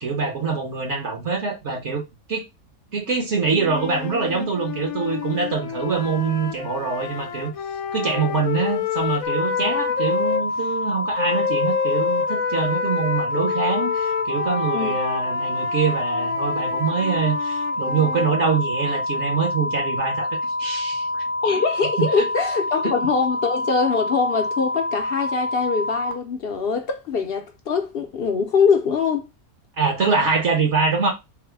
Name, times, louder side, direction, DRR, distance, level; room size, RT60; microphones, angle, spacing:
voice 1, 0.0-2.0 2.3-2.4 2.9-7.5 7.9-20.3 20.6-21.1 22.0-22.1 29.8-31.1, right 5 dB, 55° right, 1.3 m, -24 dB
sound 1, 3.5-10.4 11.2-18.3, left 8 dB, 80° left, 1.0 m, -29 dB
sound 2, 9.2-26.1, left 2 dB, 20° left, 0.7 m, -27 dB
voice 2, 21.4-29.3, left 5 dB, 55° left, 0.7 m, -23 dB
4.0 x 2.1 x 4.4 m
omnidirectional pair, 1.5 m